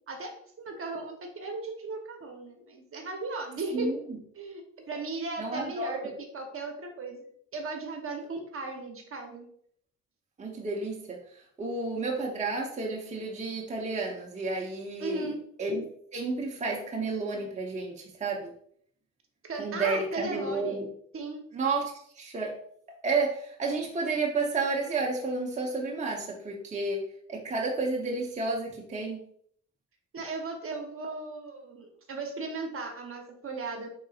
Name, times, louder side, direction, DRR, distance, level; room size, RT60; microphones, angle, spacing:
voice 1, 0.1-3.9 4.3-9.5 15.0-15.4 19.4-20.8 21.1-21.4 30.1-33.9, right 3 dB, 45° right, 3 dB, 1.1 m, -37 dB
voice 2, 3.7-4.2 5.4-6.1 10.4-11.2 11.6-15.3 15.6-18.5 19.6-20.9 21.5-22.5 23.0-27.0 27.3-29.2, right 3 dB, 25° right, -1 dB, 0.8 m, -31 dB
5.4 x 3.8 x 2.4 m, 0.64 s
cardioid pair, 90°, 30 cm